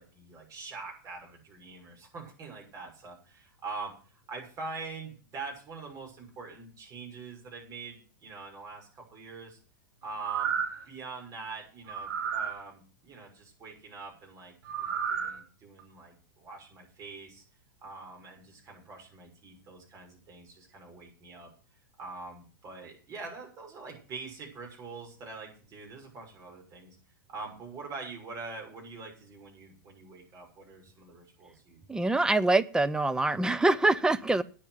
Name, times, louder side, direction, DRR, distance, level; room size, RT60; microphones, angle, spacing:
voice 1, 0.0-9.6 10.0-10.6 10.8-17.4 17.8-21.5 22.0-27.0 27.3-32.2, right 3 dB, 30° right, 0 dB, 6.2 m, -44 dB
sound 1, 10.0-10.8 11.9-12.5 14.6-15.3 15.8-15.9, right 7 dB, 75° right, 3.6 m, -32 dB
voice 2, 31.9-34.4, right 2 dB, 5° right, 13 dB, 0.6 m, -25 dB
9.8 x 7.2 x 9.3 m, 0.40 s
hypercardioid pair, 125°, 11 cm